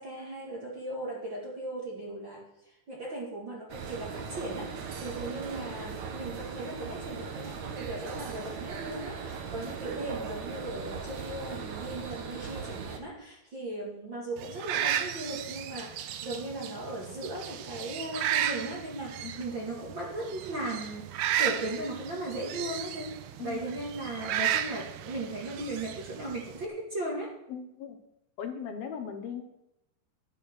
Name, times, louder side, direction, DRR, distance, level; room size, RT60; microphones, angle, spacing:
voice 1, 0.0-2.4 2.9-21.1 21.4-27.4, right 1 dB, 35° right, -2 dB, 2.2 m, -37 dB
sound 1, 3.7-13.0, right 6 dB, 55° right, 2.3 m, -39 dB
sound 2, 14.4-26.7, right 11 dB, 75° right, 2.5 m, -34 dB
voice 2, 27.5-28.0 28.4-29.4, left 7 dB, 70° left, 5 dB, 3.1 m, -38 dB
12.5 x 9.4 x 6.3 m, 0.83 s
omnidirectional pair, 4.8 m